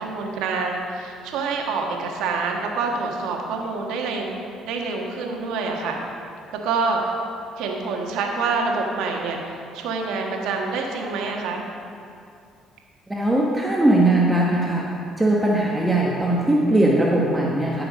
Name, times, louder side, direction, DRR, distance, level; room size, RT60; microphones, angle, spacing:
voice 1, 0.0-4.3 4.6-5.9 6.6-7.0 7.6-11.6, right 4 dB, 80° right, 1 dB, 1.5 m, -26 dB
voice 2, 13.1-14.9 15.2-17.8, right 1 dB, 10° right, -3 dB, 1.3 m, -19 dB
13.5 x 5.9 x 5.1 m, 2.5 s
supercardioid pair, 80°, 0 cm